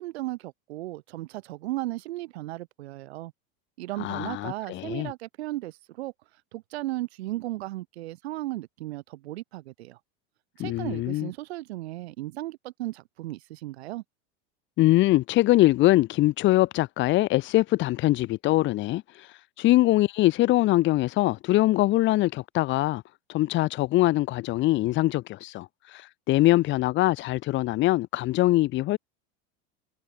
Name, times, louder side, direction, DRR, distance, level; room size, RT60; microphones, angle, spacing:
voice 1, 0.0-3.3 3.8-6.1 6.5-10.0 10.6-14.0, right 17 dB, 85° right, 4.6 m, -35 dB
voice 2, 4.0-5.1 10.6-11.3 14.8-23.0 23.3-29.0, left 17 dB, 35° left, 3.9 m, -23 dB
supercardioid pair, 160°, 32 cm